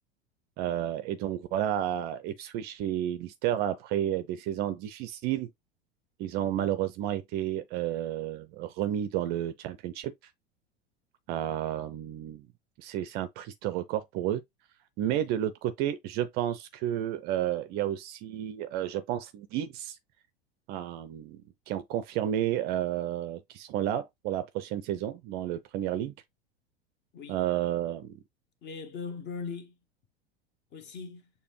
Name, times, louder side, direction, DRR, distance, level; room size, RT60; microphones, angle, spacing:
voice 1, 0.6-5.5 6.2-10.1 11.3-12.5 12.8-14.4 15.0-20.0 20.7-21.4 21.7-26.1 27.3-28.2, right 11 dB, 30° right, 0.4 m, -31 dB
voice 2, 28.6-29.8 30.7-31.3, left 5 dB, 35° left, 1.0 m, -39 dB
6.6 x 2.2 x 3.2 m
figure-of-eight pair, 80°, 31 cm